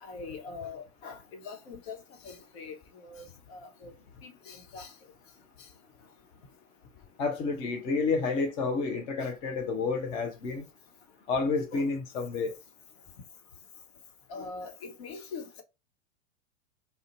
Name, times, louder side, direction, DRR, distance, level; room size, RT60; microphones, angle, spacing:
voice 1, 0.0-2.0 2.2-3.9 4.2-4.9 5.6-5.7 11.7-11.9 14.3-15.6, left 4 dB, 55° left, 1.0 m, -43 dB
voice 2, 7.2-10.6 11.3-12.5, left 4 dB, 15° left, 0.3 m, -30 dB
2.4 x 2.2 x 3.9 m
figure-of-eight pair, 95°, 38 cm